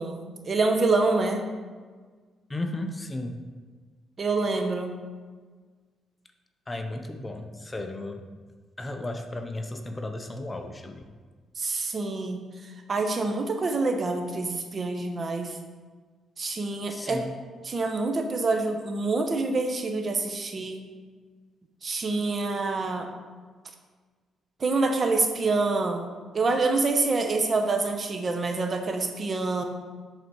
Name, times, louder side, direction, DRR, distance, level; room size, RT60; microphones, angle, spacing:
voice 1, 0.0-1.4 4.2-4.9 11.6-12.4 12.9-15.6 16.4-17.2 17.6-20.8 21.8-23.1 24.6-26.1 26.3-29.6, right 3 dB, 40° right, 5 dB, 0.8 m, -26 dB
voice 2, 2.5-3.4 6.7-8.2 8.8-11.0 16.9-17.3, left 2 dB, 20° left, 6 dB, 0.6 m, -34 dB
7.8 x 4.1 x 4.7 m, 1.5 s
cardioid pair, 90°, 0 cm